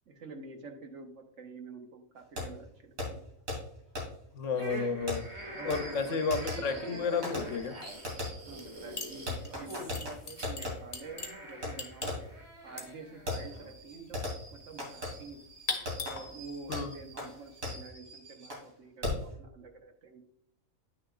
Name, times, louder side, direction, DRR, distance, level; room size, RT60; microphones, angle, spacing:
voice 1, 0.1-3.2 5.5-6.3 6.5-7.2 8.4-12.3 12.6-14.2 14.5-15.5 16.1-20.2, right 4 dB, 65° right, 5 dB, 1.3 m, -48 dB
Fireworks, 2.4-2.5 3.0-3.1 3.5-3.6 4.0-4.1 5.1-10.7 11.6-11.7 12.0-12.3 13.3-18.7 19.0-19.3, left 2 dB, 80° right, 2.9 m, -39 dB
voice 2, 4.3-5.3 5.6-6.4 6.6-7.8 16.7-16.9, left 5 dB, 70° left, 8 dB, 1.1 m, -31 dB
sound 1, 4.5-13.7, equal, 20° right, 1.4 m, -45 dB
sound 2, 8.5-8.7 9.0-17.9, left 3 dB, 30° left, 0.9 m, -42 dB
9.4 x 6.4 x 2.4 m, 0.68 s
omnidirectional pair, 1.4 m